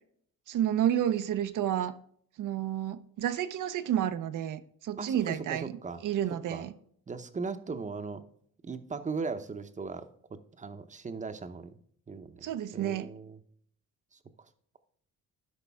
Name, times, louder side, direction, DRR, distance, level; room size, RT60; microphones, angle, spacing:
voice 1, 0.5-2.0 2.4-5.8 6.0-6.7 12.4-13.1, right 10 dB, 70° right, 0.7 m, -30 dB
voice 2, 5.0-6.0 6.5-6.6 7.1-8.2 8.6-11.8 12.1-13.4, right 4 dB, 25° right, 0.8 m, -38 dB
12.5 x 5.2 x 3.5 m
cardioid pair, 125°, 32 cm